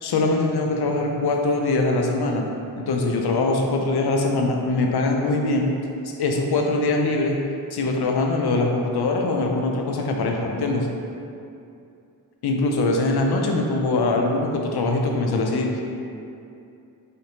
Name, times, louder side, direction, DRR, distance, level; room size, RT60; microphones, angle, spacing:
voice 1, 0.0-2.4 2.8-5.7 6.2-7.4 7.7-10.9 12.4-15.8, left 2 dB, 85° left, 1 dB, 0.6 m, -22 dB
5.0 x 2.7 x 2.9 m, 2.6 s
cardioid pair, 55°, 38 cm